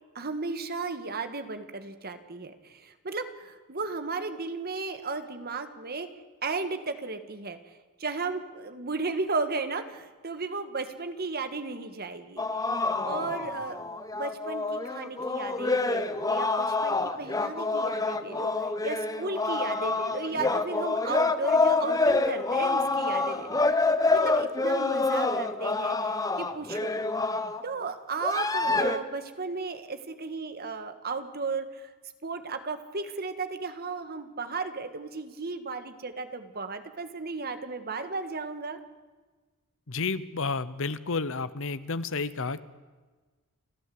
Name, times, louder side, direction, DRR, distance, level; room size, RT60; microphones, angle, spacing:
voice 1, 0.1-6.1 6.4-7.6 8.0-12.5 13.0-13.8 14.1-18.5 18.8-23.6 24.1-27.1 27.6-31.9 32.2-38.8, right 4 dB, 45° right, 9 dB, 1.6 m, -35 dB
sound 1, 12.4-27.6 28.2-29.0, left 3 dB, 15° left, 0.9 m, -27 dB
voice 2, 39.9-42.6, left 4 dB, 60° left, 15 dB, 0.9 m, -31 dB
29.5 x 13.0 x 7.8 m, 1.3 s
head